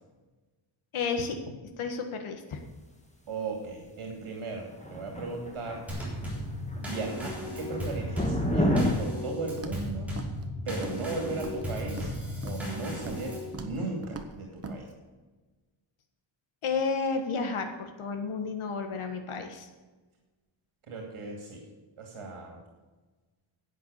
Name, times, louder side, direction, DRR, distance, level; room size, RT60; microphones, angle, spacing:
voice 1, 0.9-2.6 16.6-19.7, left 4 dB, 80° left, 5 dB, 1.6 m, -32 dB
voice 2, 3.3-5.9 6.8-10.1 10.6-12.1 12.4-14.9 20.9-21.6 22.0-22.6, right 3 dB, 85° right, 1 dB, 2.7 m, -36 dB
sound 1, 4.7-6.3 6.6-6.9 7.2-8.9, left 1 dB, 15° left, 1.7 m, -29 dB
Drum kit / Snare drum / Bass drum, 5.9-13.6, left 1 dB, 5° right, 3.6 m, -36 dB
Walk footsteps, 9.6-9.9 10.2-10.4 10.7-11.1 11.3-12.1 12.4-12.7 13.0-13.3 13.5-13.8 14.0-14.3 14.6-14.8, right 3 dB, 30° right, 1.0 m, -40 dB
11.0 x 8.4 x 6.6 m, 1.3 s
wide cardioid pair, 180°, 49 cm